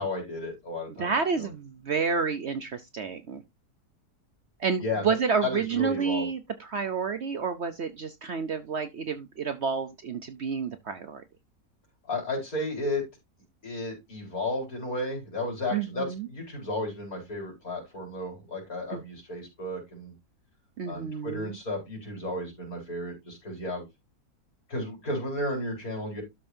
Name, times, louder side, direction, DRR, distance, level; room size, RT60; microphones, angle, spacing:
voice 1, 0.0-1.1 1.4-1.5 4.8-5.2 5.4-6.3 12.1-13.0 13.6-20.1 20.8-23.9 24.7-26.2, left 2 dB, 65° left, 4.8 m, -33 dB
voice 2, 1.0-3.4 4.6-11.2 15.7-16.3 18.9-19.0 20.8-21.6, right 5 dB, 55° right, 0.8 m, -30 dB
12.5 x 5.3 x 2.7 m
omnidirectional pair, 1.7 m